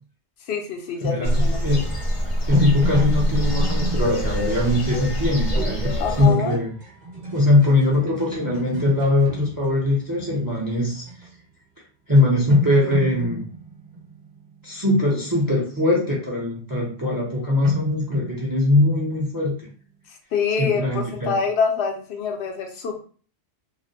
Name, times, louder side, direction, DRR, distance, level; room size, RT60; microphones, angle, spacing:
voice 1, 0.5-1.6 6.0-6.6 20.3-23.0, left 5 dB, 75° left, 3 dB, 0.8 m, -25 dB
voice 2, 1.0-1.9 2.5-6.7 7.3-11.0 12.1-13.4 14.6-19.6 20.6-21.3, left 2 dB, 30° right, -3 dB, 0.4 m, -21 dB
sound 1, 1.2-6.3, equal, 50° left, 0.4 m, -24 dB
sound 2, 2.2-10.5 11.0-11.3 12.2-12.3 12.5-15.0 17.6-19.5, right 2 dB, 45° right, 0.8 m, -34 dB
2.4 x 2.0 x 2.7 m, 0.42 s
omnidirectional pair, 1.1 m